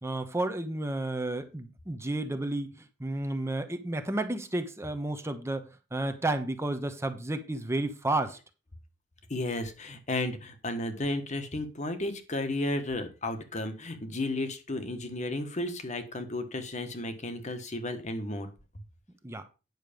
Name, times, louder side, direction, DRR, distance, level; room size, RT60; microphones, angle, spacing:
voice 1, 0.0-8.4 19.2-19.5, right 2 dB, 15° right, 0.9 m, -32 dB
voice 2, 9.3-18.5, left 2 dB, 40° left, 1.4 m, -33 dB
9.4 x 6.4 x 5.2 m
head